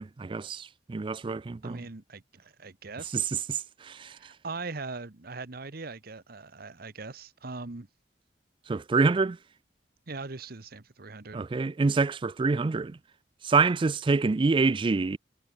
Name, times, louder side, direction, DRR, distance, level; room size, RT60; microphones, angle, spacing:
voice 1, 0.0-1.8 3.1-3.2 3.5-4.1 8.7-9.4 11.3-13.0 13.4-15.2, right 4 dB, 30° right, 0.4 m, -26 dB
voice 2, 1.6-3.4 4.2-7.9 10.1-11.4, right 3 dB, 55° right, 1.2 m, -40 dB
head